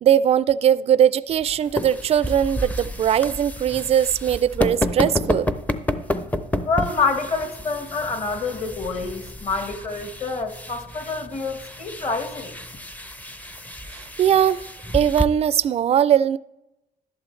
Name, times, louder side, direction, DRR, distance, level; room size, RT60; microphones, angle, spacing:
voice 1, 0.0-5.5 13.9-14.6 14.9-16.4, right 9 dB, 35° right, 0.3 m, -20 dB
sound 1, 1.3-15.2, left 1 dB, 10° left, 0.6 m, -30 dB
voice 2, 6.6-12.6, left 4 dB, 35° left, 1.4 m, -27 dB
12.0 x 11.0 x 3.2 m
cardioid pair, 110°, 17 cm